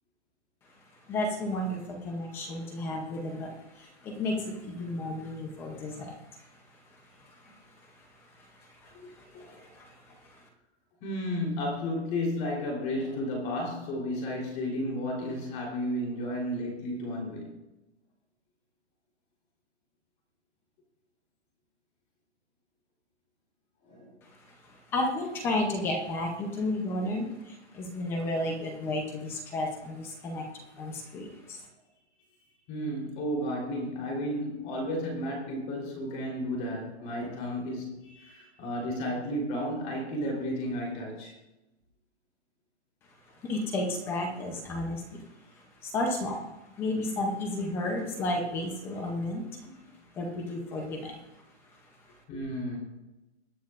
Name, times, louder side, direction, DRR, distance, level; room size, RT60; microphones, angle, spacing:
voice 1, 0.6-10.5 24.2-31.7 43.3-49.7 50.1-51.2 51.7-52.2, left 1 dB, 5° left, 3 dB, 0.6 m, -34 dB
voice 2, 8.9-9.7 11.0-17.5 23.8-24.1 32.7-41.3 52.3-52.8, equal, 20° left, 0 dB, 3.5 m, -33 dB
21.0 x 9.5 x 2.5 m, 0.99 s
hypercardioid pair, 165°, 35 cm